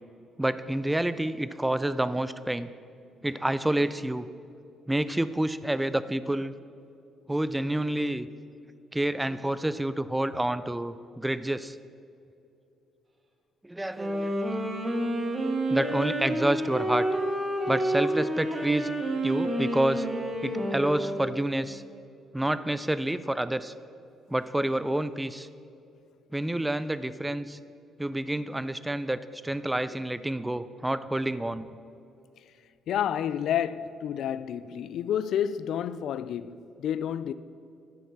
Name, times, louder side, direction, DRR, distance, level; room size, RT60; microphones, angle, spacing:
voice 1, 0.4-2.7 3.2-4.3 4.9-6.5 7.3-8.3 8.9-11.8 13.6-14.4 15.7-17.1 17.7-18.9 19.2-20.1 20.4-21.8 22.3-23.7 24.3-25.5 26.3-27.6 28.0-31.8, right 1 dB, 10° right, 0.4 m, -28 dB
Wind instrument woodwind instrument, 13.9-21.6, right 1 dB, 30° right, 1.6 m, -29 dB
voice 2, 32.9-37.3, left 9 dB, 75° left, 0.3 m, -30 dB
9.5 x 7.1 x 5.9 m
cardioid pair, 90°, 0 cm